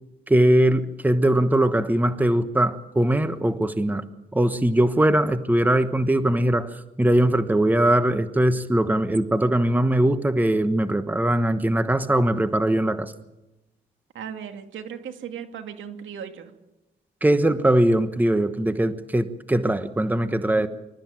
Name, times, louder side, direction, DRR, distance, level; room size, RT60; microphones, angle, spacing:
voice 1, 0.3-4.0 4.3-6.7 7.0-13.1 17.2-20.7, right 1 dB, 10° right, 11 dB, 1.2 m, -21 dB
voice 2, 14.1-16.5 20.5-20.7, right 8 dB, 75° right, 6 dB, 2.4 m, -37 dB
26.0 x 13.5 x 8.9 m, 1.0 s
cardioid pair, 90°, 20 cm